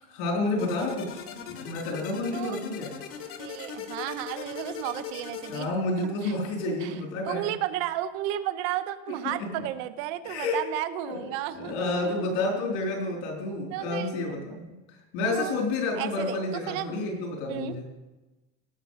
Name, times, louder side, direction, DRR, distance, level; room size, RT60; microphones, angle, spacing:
voice 1, 0.1-3.0 5.5-7.5 9.4-9.5 10.2-10.6 11.0-14.8 15.1-17.8, left 2 dB, 80° left, 0 dB, 4.2 m, -30 dB
sound 1, 0.6-5.7, left 7 dB, 50° left, 1.3 m, -40 dB
voice 2, 3.4-5.7 6.0-6.3 6.8-12.3 13.7-14.2 15.2-15.7 16.0-17.1 17.5-17.8, right 13 dB, 80° right, 13 dB, 0.8 m, -33 dB
17.0 x 6.0 x 5.7 m, 1.1 s
cardioid pair, 150°, 29 cm